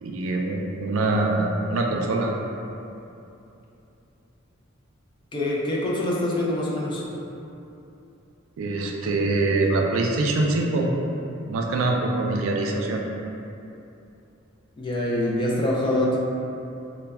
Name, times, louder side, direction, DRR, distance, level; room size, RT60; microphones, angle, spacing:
voice 1, 0.0-2.3 8.6-10.9 11.4-13.0, right 2 dB, 70° right, 1 dB, 0.3 m, -24 dB
voice 2, 5.3-7.0 14.8-16.2, left 1 dB, 25° left, -4 dB, 0.3 m, -24 dB
2.2 x 2.1 x 3.4 m, 2.8 s
head